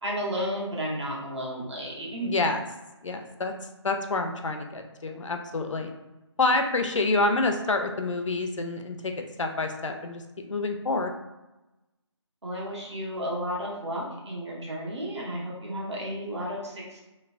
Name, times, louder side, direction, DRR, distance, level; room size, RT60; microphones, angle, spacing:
voice 1, 0.0-2.5 12.4-17.0, equal, 65° right, -4 dB, 1.0 m, -33 dB
voice 2, 2.2-2.6 3.0-3.5 3.8-5.9 6.4-9.1 9.4-11.1, left 3 dB, 85° left, 5 dB, 0.5 m, -27 dB
3.1 x 2.0 x 2.4 m, 1.0 s
figure-of-eight pair, 160°, 15 cm